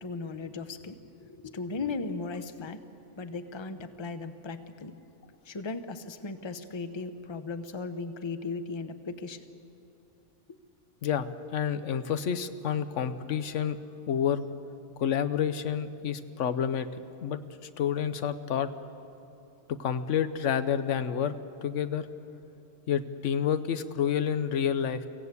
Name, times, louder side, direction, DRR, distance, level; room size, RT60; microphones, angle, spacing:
voice 1, 0.0-2.8 3.2-4.9 5.5-9.4, left 3 dB, 25° left, 10 dB, 0.8 m, -37 dB
voice 2, 11.0-13.8 14.1-14.4 15.0-16.9 17.2-18.7 19.7-21.3 21.6-22.1 22.9-25.1, left 8 dB, 85° left, 11 dB, 1.1 m, -29 dB
23.5 x 16.0 x 8.3 m, 2.7 s
omnidirectional pair, 1.2 m